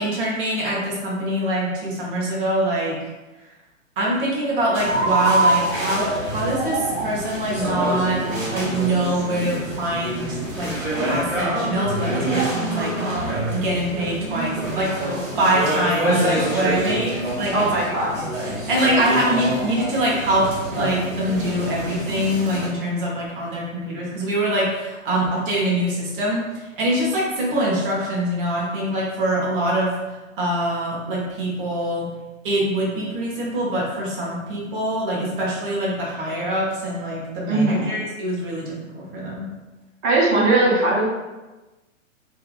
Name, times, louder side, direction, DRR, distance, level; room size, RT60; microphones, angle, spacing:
voice 1, 0.0-3.0 4.0-8.2 8.5-10.8 11.0-13.0 13.5-14.9 15.4-17.7 18.1-20.5 20.8-26.4 26.8-29.9 30.4-32.1 32.4-39.5, right 1 dB, 40° right, -4 dB, 1.1 m, -24 dB
sound 1, 4.7-22.7, right 1 dB, 90° right, 1.3 m, -26 dB
voice 2, 17.5-18.1 37.5-37.9 40.0-41.1, right 2 dB, 20° right, -5 dB, 0.5 m, -19 dB
3.4 x 2.8 x 2.3 m, 1.1 s
figure-of-eight pair, 115°, 40 cm